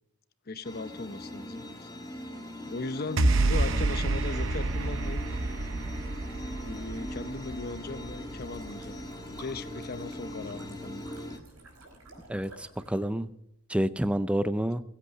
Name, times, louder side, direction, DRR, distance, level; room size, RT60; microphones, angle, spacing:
voice 1, 0.5-1.9 2.6-5.2 6.6-8.9 9.4-11.0, left 3 dB, 45° left, 12 dB, 0.7 m, -38 dB
sound 1, 0.6-11.4, left 1 dB, 20° left, 1.5 m, -41 dB
sound 2, 3.2-9.6, right 2 dB, 60° right, 0.8 m, -29 dB
sound 3, 8.3-13.1, right 2 dB, 90° right, 5.5 m, -52 dB
voice 2, 12.3-13.3 13.7-14.8, right 1 dB, 5° right, 13 dB, 0.5 m, -28 dB
21.5 x 8.4 x 6.5 m, 0.81 s
head